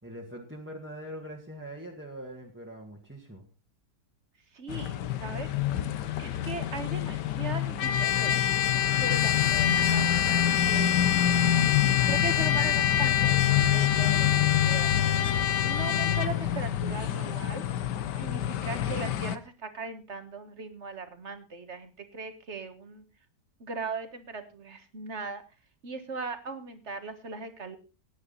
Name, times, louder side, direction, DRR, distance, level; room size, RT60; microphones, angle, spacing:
voice 1, 0.0-3.4, right 1 dB, 5° right, -2 dB, 1.8 m, -42 dB
voice 2, 4.5-5.5 6.2-8.4 9.0-11.1 12.1-14.9 15.6-17.7 18.1-23.0 23.6-25.4 25.8-27.8, right 4 dB, 40° right, 9 dB, 1.8 m, -39 dB
sound 1, 4.7-19.4, left 10 dB, 80° left, 1.5 m, -28 dB
Trumpet, 7.8-16.3, left 10 dB, 60° left, 1.3 m, -27 dB
17.5 x 9.6 x 4.1 m, 0.32 s
omnidirectional pair, 1.8 m